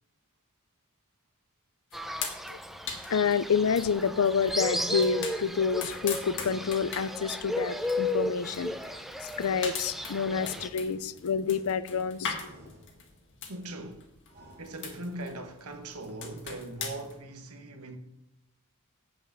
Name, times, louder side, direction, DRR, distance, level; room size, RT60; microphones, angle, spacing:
sound 1, 1.9-17.1, left 6 dB, 55° left, 1.6 m, -41 dB
Fowl, 1.9-10.7, left 1 dB, ahead, 0.5 m, -34 dB
voice 1, 3.1-8.7 9.4-12.4, left 6 dB, 75° left, 0.5 m, -28 dB
sound 2, 6.2-7.3 8.4-9.4 10.3-11.3 12.4-13.3 14.3-15.2, right 1 dB, 50° right, 1.6 m, -53 dB
voice 2, 13.5-14.1 14.6-18.0, right 1 dB, 80° right, 1.3 m, -40 dB
8.1 x 5.1 x 7.4 m
head